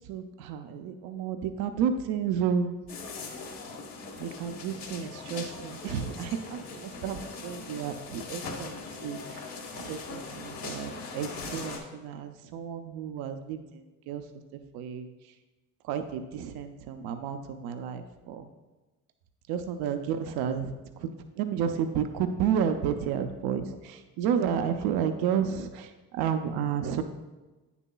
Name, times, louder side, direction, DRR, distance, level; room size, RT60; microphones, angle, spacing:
voice 1, 0.1-3.0 4.2-8.8 9.0-14.2 14.7-15.1 15.8-18.5 19.5-27.0, right 7 dB, 80° right, 7 dB, 0.6 m, -31 dB
sound 1, 2.9-11.8, left 4 dB, 70° left, 1.5 m, -40 dB
8.9 x 7.0 x 2.3 m, 1.2 s
supercardioid pair, 85°, 37 cm